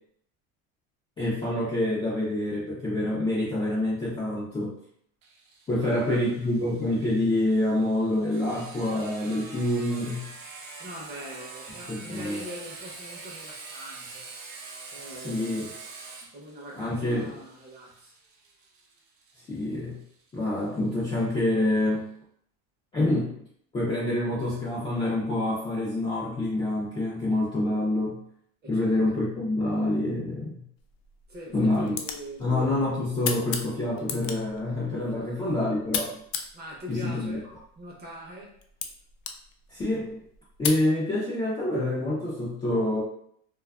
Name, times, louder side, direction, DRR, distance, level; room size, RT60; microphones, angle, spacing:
voice 1, 1.2-4.7 5.7-10.3 11.9-12.4 15.2-15.6 16.8-17.4 19.5-20.0 20.3-22.1 22.9-23.4 23.7-28.2 28.7-30.6 31.5-31.9 32.4-36.2 36.9-37.4 39.7-40.2 40.6-43.0, left 1 dB, 15° left, -8 dB, 0.3 m, -27 dB
Sawing, 5.2-20.6, right 4 dB, 75° right, 0.7 m, -45 dB
voice 2, 5.7-6.5 10.8-14.3 14.9-15.7 16.3-18.1 28.6-29.0 31.3-32.5 35.0-35.4 36.5-38.5, equal, 25° right, -2 dB, 0.6 m, -43 dB
sound 1, 30.8-40.9, left 7 dB, 70° left, 0.5 m, -38 dB
2.4 x 2.3 x 2.3 m, 0.66 s
supercardioid pair, 130°, 42 cm